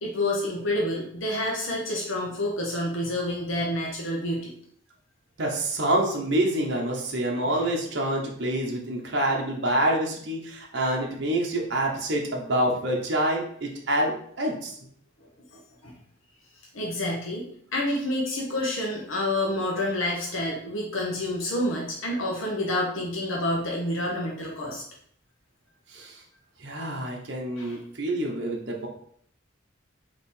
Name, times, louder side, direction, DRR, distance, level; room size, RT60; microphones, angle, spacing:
voice 1, 0.0-4.5 7.5-7.7 15.8-15.9 16.7-17.5 17.7-24.8 27.6-27.8, left 1 dB, 75° left, -2 dB, 0.9 m, -28 dB
voice 2, 5.4-14.7 25.9-26.2 26.6-28.9, right 1 dB, 55° right, -1 dB, 0.7 m, -27 dB
3.5 x 2.9 x 4.3 m, 0.63 s
head